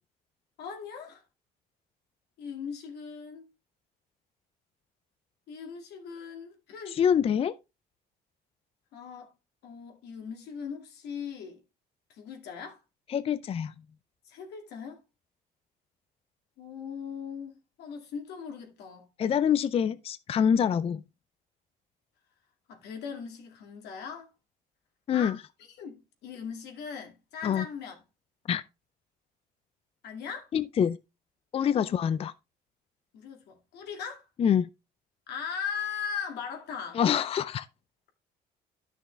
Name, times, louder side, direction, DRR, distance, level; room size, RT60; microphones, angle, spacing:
voice 1, 0.6-1.2 2.4-3.5 5.5-7.0 8.9-9.3 9.6-11.6 12.1-12.8 14.3-15.0 16.6-19.1 22.7-24.3 25.1-25.4 25.8-28.0 30.0-30.5 31.6-31.9 33.1-34.3 35.3-37.0, left 6 dB, 75° left, 2.3 m, -39 dB
voice 2, 6.9-7.5 13.1-13.7 19.2-21.0 25.1-25.4 27.4-27.6 28.5-28.6 30.5-31.0 31.5-32.3 34.4-34.7 36.9-37.7, left 8 dB, 35° left, 0.4 m, -25 dB
11.0 x 6.3 x 3.2 m
cardioid pair, 110°, 17 cm